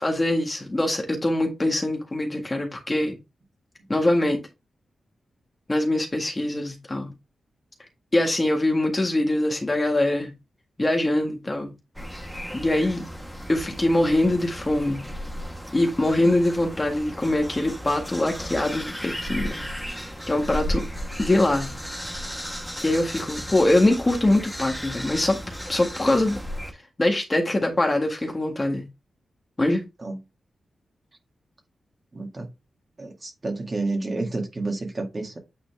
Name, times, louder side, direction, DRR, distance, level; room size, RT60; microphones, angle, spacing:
voice 1, 0.0-3.1 3.9-4.4 5.7-7.1 8.1-10.3 10.8-11.7 12.5-13.0 13.5-15.0 15.7-19.6 20.3-20.9 21.2-21.7 22.8-25.4 25.7-26.4 27.0-28.9 29.6-29.8, left 1 dB, 20° left, 1.7 m, -23 dB
sound 1, 11.9-26.7, equal, ahead, 1.4 m, -35 dB
voice 2, 32.1-32.5 33.0-35.4, right 2 dB, 30° right, 2.1 m, -30 dB
8.9 x 4.1 x 3.4 m
wide cardioid pair, 130°, 0 cm